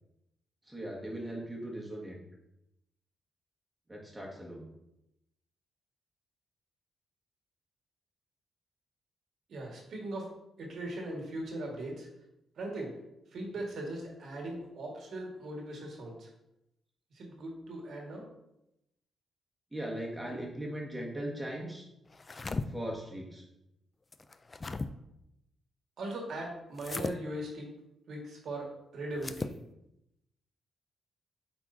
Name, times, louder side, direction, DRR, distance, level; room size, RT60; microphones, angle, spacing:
voice 1, 0.7-2.2 3.9-4.6 19.7-21.8 22.7-23.4, right 1 dB, 10° right, -2 dB, 1.7 m, -39 dB
voice 2, 9.5-10.3 10.6-12.1 12.6-12.9 13.3-16.3 17.1-18.3 26.0-27.7 28.1-29.5, right 1 dB, 70° right, -1 dB, 1.8 m, -39 dB
sound 1, 22.1-22.7 24.1-24.9 26.8-27.2 29.1-29.6, left 3 dB, 30° left, 0.3 m, -36 dB
8.3 x 4.5 x 2.8 m, 0.86 s
cardioid pair, 100°, 0 cm